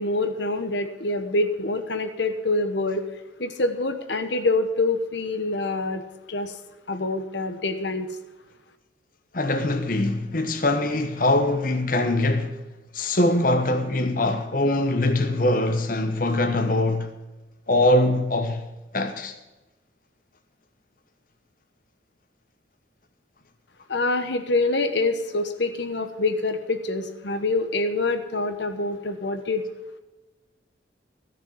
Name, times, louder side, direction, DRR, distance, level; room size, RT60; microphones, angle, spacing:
voice 1, 0.0-3.1 3.4-6.0 6.3-6.6 6.9-8.1 23.9-29.6, left 2 dB, 70° left, 1.2 m, -26 dB
voice 2, 9.3-12.6 12.9-17.1 17.7-18.6 18.9-19.3, left 1 dB, 45° left, 1.1 m, -22 dB
14.5 x 6.8 x 7.5 m
head